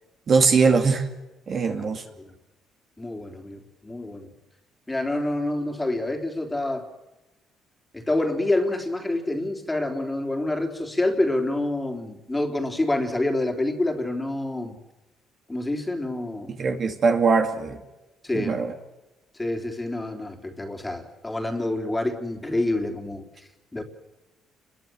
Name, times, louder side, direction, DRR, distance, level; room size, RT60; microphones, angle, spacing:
voice 1, 0.3-1.1 1.5-2.0 16.5-17.8 18.3-18.7, right 4 dB, 40° right, 4 dB, 2.4 m, -21 dB
voice 2, 3.0-4.3 4.9-6.9 7.9-14.8 15.5-16.5 18.2-18.6 19.3-23.3 23.7-23.8, left 2 dB, 10° left, 2 dB, 3.5 m, -27 dB
29.5 x 22.5 x 7.7 m, 1.0 s
cardioid pair, 145°, 0 cm